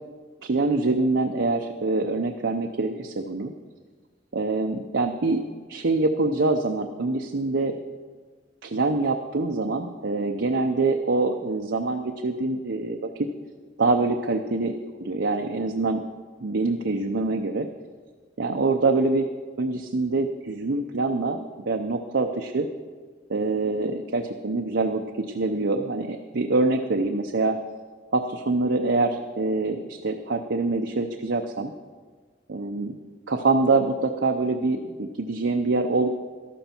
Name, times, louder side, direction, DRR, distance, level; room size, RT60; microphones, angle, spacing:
voice 1, 0.4-3.5 4.3-5.4 5.7-7.8 8.6-13.1 13.8-14.7 15.0-16.0 16.4-17.7 18.4-19.3 19.6-21.4 21.7-22.7 23.3-27.6 28.1-31.7 32.5-33.0 33.3-36.1, right 3 dB, 90° right, 3 dB, 0.7 m, -25 dB
13.0 x 12.5 x 4.4 m, 1.5 s
head